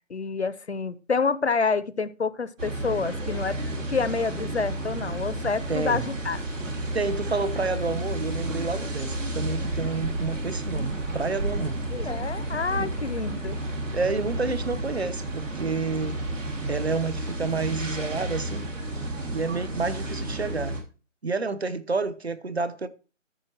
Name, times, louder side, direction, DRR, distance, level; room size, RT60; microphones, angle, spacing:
voice 1, 0.1-3.6 3.9-6.4 11.9-13.6, left 4 dB, 55° left, 0.7 m, -28 dB
sound 1, 2.6-20.8, right 1 dB, 70° right, 3.0 m, -31 dB
voice 2, 5.7-6.1 6.9-11.8 12.8-12.9 13.9-16.2 16.7-18.6 19.0-20.8 21.2-22.9, right 4 dB, 55° right, 1.0 m, -29 dB
14.0 x 6.7 x 2.9 m
figure-of-eight pair, 175°, 39 cm